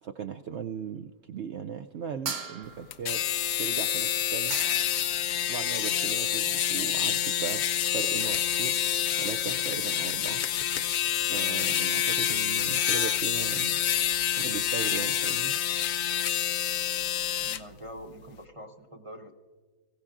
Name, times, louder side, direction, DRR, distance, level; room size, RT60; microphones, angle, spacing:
voice 1, 0.0-3.2 3.6-4.6 5.3-8.8 9.2-10.4 11.2-13.8 14.4-15.5, right 7 dB, 85° right, 6 dB, 0.6 m, -38 dB
sound 1, 2.2-3.1 4.2-4.3 4.5-5.1, right 5 dB, 60° right, 1.8 m, -37 dB
sound 2, 2.9-17.6, left 10 dB, 85° left, 0.6 m, -27 dB
voice 2, 17.4-19.3, equal, 30° right, 1 dB, 0.6 m, -44 dB
24.5 x 16.0 x 2.5 m, 1.4 s
omnidirectional pair, 1.8 m